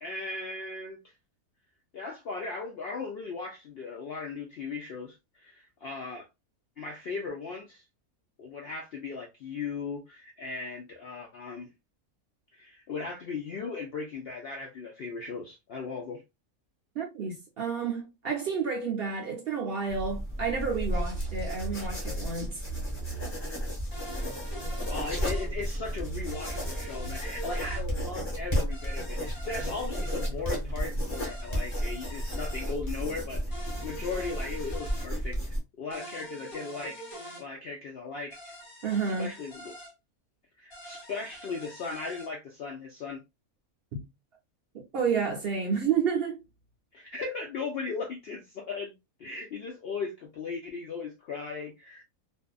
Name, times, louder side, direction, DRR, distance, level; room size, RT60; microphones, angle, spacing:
voice 1, 0.0-1.1 1.9-6.3 6.8-7.8 8.4-11.7 12.5-16.2 24.9-33.4 33.8-38.5 39.2-39.7 40.6-43.2 46.9-48.9 49.2-52.0, left 4 dB, 70° left, 0.6 m, -37 dB
voice 2, 17.0-22.6 38.8-39.3 43.9-44.0 44.9-46.4, right 6 dB, 55° right, 0.7 m, -30 dB
sound 1, 19.9-35.6, equal, 20° left, 1.0 m, -33 dB
sound 2, 21.1-22.2 22.6-23.3 24.2-27.2 27.6-28.3 29.1-31.0, right 5 dB, 75° right, 1.0 m, -42 dB
sound 3, 23.9-25.5 26.3-27.8 28.7-30.3 31.1-32.7 33.5-35.1 35.9-37.4 38.3-39.9 40.7-42.3, equal, 45° left, 1.1 m, -45 dB
2.5 x 2.4 x 2.2 m
omnidirectional pair, 1.5 m